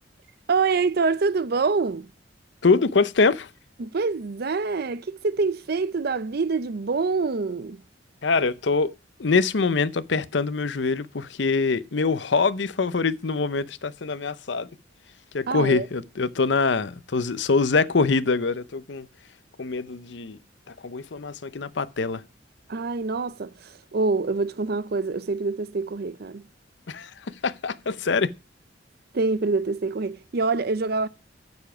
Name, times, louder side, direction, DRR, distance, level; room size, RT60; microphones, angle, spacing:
voice 1, 0.5-2.1 3.8-7.8 15.5-15.9 22.7-26.4 29.1-31.1, right 4 dB, 55° right, 0.6 m, -25 dB
voice 2, 2.6-3.5 8.2-8.9 9.2-14.7 15.3-19.1 19.6-20.4 20.8-22.2 26.9-28.3, left 4 dB, 70° left, 0.7 m, -24 dB
9.4 x 7.1 x 6.0 m
head